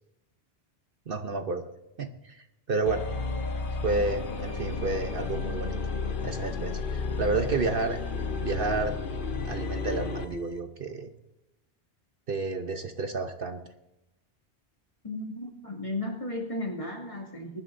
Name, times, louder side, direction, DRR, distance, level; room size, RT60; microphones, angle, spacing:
voice 1, 1.1-1.7 2.0-3.1 3.8-5.8 6.2-8.0 8.4-9.0 9.4-11.1 12.3-13.6, right 3 dB, 55° right, 7 dB, 1.0 m, -30 dB
sound 1, 2.9-10.3, left 4 dB, 55° left, 1.1 m, -33 dB
sound 2, 3.9-9.7, left 4 dB, 70° left, 1.4 m, -41 dB
voice 2, 15.0-17.6, left 1 dB, 30° left, -1 dB, 2.5 m, -34 dB
21.5 x 11.5 x 2.6 m, 0.92 s
omnidirectional pair, 1.1 m